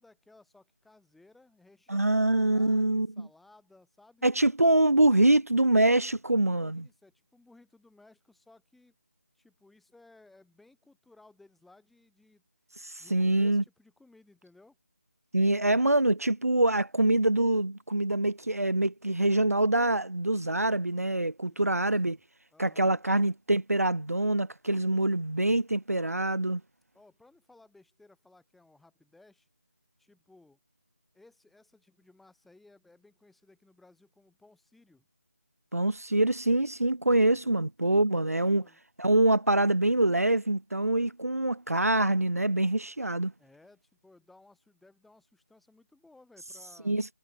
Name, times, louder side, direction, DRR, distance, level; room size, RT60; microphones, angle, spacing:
voice 1, 0.0-4.3 6.5-8.9 9.4-12.4 13.0-14.8 21.4-22.2 22.5-23.0 24.7-24.8 26.9-29.5 30.0-30.6 31.1-35.1 37.3-37.7 38.1-38.8 43.4-47.0, left 2 dB, ahead, 4.8 m, -60 dB
voice 2, 1.9-3.3 4.2-6.9 12.8-13.6 15.3-22.2 22.6-26.6 35.7-38.6 39.0-43.3 46.8-47.1, right 1 dB, 75° right, 2.2 m, -25 dB
figure-of-eight pair, 160°, 8 cm